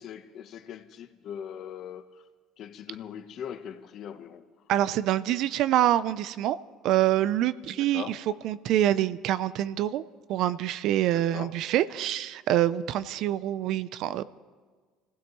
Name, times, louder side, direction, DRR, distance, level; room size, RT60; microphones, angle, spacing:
voice 1, 0.0-2.2 2.6-4.4 7.8-8.2 11.1-11.5, left 9 dB, 50° left, 1.0 m, -41 dB
voice 2, 4.7-6.6 6.8-8.2 8.4-10.0 10.3-14.2, right 12 dB, 60° right, 0.5 m, -26 dB
24.5 x 16.0 x 3.1 m
cardioid pair, 125°, 0 cm